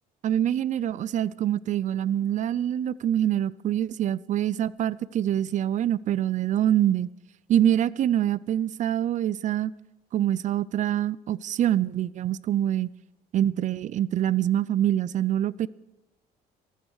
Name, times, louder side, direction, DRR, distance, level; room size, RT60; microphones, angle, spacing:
voice 1, 0.2-7.1 7.5-9.7 10.1-12.9 13.3-15.7, right 11 dB, 45° right, 0.5 m, -25 dB
14.5 x 14.5 x 4.8 m
cardioid pair, 110°, 17 cm